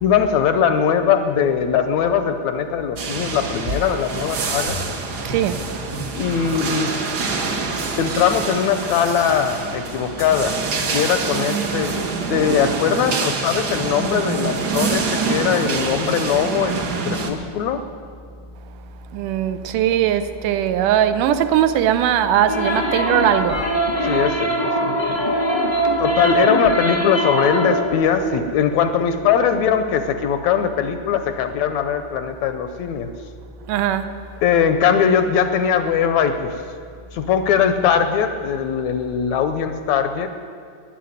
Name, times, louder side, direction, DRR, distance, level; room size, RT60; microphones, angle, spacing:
voice 1, 0.0-4.8 6.2-7.0 7.9-10.6 10.9-17.8 24.0-25.2 26.0-33.1 34.4-36.6 37.1-40.3, left 7 dB, 80° left, 1.8 m, -20 dB
sound 1, 3.0-17.3, right 4 dB, 70° right, 0.9 m, -26 dB
sound 2, 3.7-4.4 4.7-5.0 5.3-5.5 5.9-6.2 6.5-6.6 7.0-7.2 7.8-8.4 9.0-9.8 10.2-10.5 11.0-11.1, right 1 dB, 45° right, 1.1 m, -34 dB
voice 2, 5.2-5.7 19.1-23.7 28.3-28.4 33.7-34.2, right 10 dB, 90° right, 2.3 m, -20 dB
sound 3, 22.5-27.9, right 1 dB, 35° left, 0.7 m, -22 dB
12.5 x 10.0 x 9.1 m
omnidirectional pair, 3.6 m